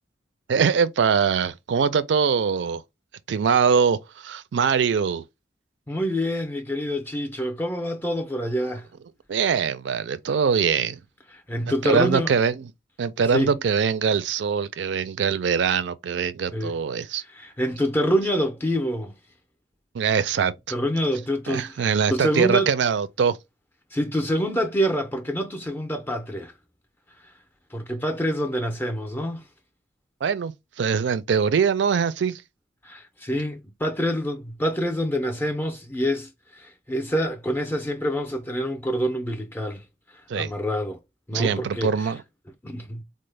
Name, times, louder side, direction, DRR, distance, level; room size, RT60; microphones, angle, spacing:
voice 1, 0.5-2.8 3.3-5.2 9.3-11.0 11.8-12.7 13.0-17.2 19.9-20.5 21.5-23.4 30.2-32.4 40.3-40.5 41.3-42.2, right 6 dB, 75° right, 0.4 m, -23 dB
voice 2, 5.9-8.9 11.3-12.3 13.3-13.6 16.5-16.8 17.1-19.1 20.7-22.7 23.9-26.5 27.2-27.3 27.7-29.5 32.8-41.0 41.3-42.1 42.6-43.0, equal, 10° left, 0.4 m, -26 dB
4.0 x 2.0 x 3.2 m
head